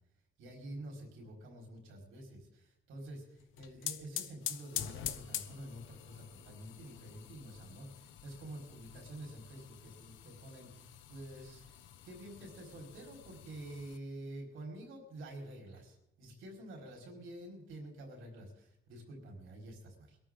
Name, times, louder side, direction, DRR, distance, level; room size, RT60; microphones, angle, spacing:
voice 1, 0.4-11.8 12.0-20.2, right 1 dB, 85° right, 0 dB, 4.7 m, -48 dB
sound 1, 3.4-14.0, left 11 dB, 85° left, 0.9 m, -46 dB
22.5 x 13.5 x 3.9 m, 0.85 s
cardioid pair, 90°, 20 cm